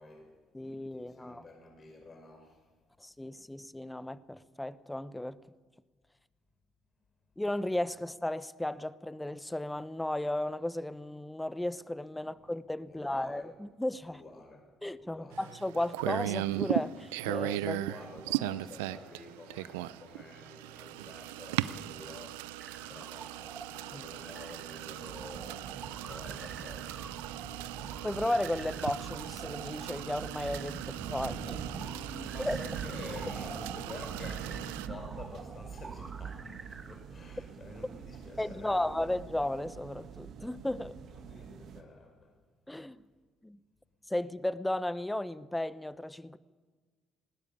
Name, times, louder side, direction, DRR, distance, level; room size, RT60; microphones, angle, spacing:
voice 1, 0.0-2.7 12.9-13.5 14.0-14.7 15.0-15.5 17.5-23.6 23.9-25.7 26.0-27.1 31.7-39.1 41.1-42.4, left 2 dB, 40° left, 5.2 m, -49 dB
voice 2, 0.5-1.4 3.0-5.4 7.4-14.2 14.8-17.8 23.9-24.0 28.0-31.6 32.4-32.6 38.4-41.0 42.7-43.0 43.4-43.6 44.1-46.4, left 1 dB, 10° left, 1.1 m, -34 dB
sound 1, 15.3-34.9, right 16 dB, 85° right, 0.6 m, -38 dB
sound 2, 22.6-37.0, right 4 dB, 35° right, 2.3 m, -49 dB
sound 3, 25.0-41.8, right 7 dB, 60° right, 2.0 m, -44 dB
19.5 x 19.0 x 8.7 m
hypercardioid pair, 55°, 0 cm